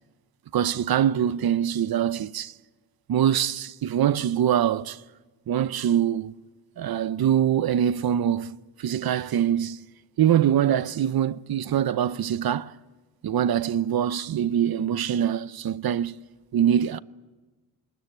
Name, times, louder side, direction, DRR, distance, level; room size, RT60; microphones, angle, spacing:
voice 1, 0.5-2.5 3.1-5.0 5.5-6.3 6.8-9.9 10.2-12.8 13.2-16.2 16.5-17.0, right 10 dB, 65° right, 0.7 m, -24 dB
26.0 x 20.0 x 9.3 m
wide cardioid pair, 140°, 40 cm